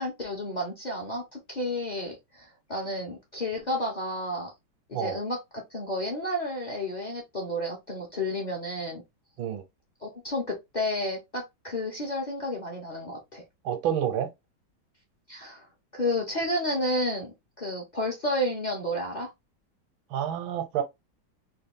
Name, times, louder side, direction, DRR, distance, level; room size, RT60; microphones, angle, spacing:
voice 1, 0.0-4.5 4.9-9.0 10.0-13.4 15.3-15.7 15.9-19.3, left 1 dB, 55° left, 0.4 m, -31 dB
voice 2, 13.6-14.3 20.1-20.8, right 9 dB, 80° right, 1.5 m, -28 dB
3.4 x 2.3 x 3.6 m
omnidirectional pair, 2.2 m